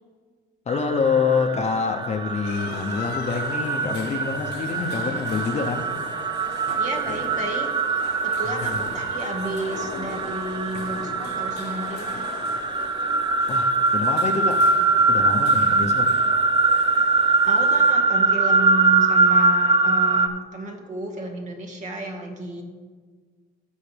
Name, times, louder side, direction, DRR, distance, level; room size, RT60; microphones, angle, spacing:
voice 1, 0.7-5.9 8.6-8.8 13.5-14.6 15.1-16.1, left 5 dB, 40° left, 5 dB, 0.8 m, -26 dB
sound 1, 0.7-20.3, right 3 dB, 25° right, 0.6 m, -22 dB
sound 2, 2.4-17.9, left 6 dB, 90° left, 1.1 m, -40 dB
voice 2, 6.8-7.7 8.2-12.3 17.4-22.6, right 1 dB, 45° right, 3 dB, 1.8 m, -32 dB
16.5 x 5.6 x 3.4 m, 1.5 s
cardioid pair, 110°, 17 cm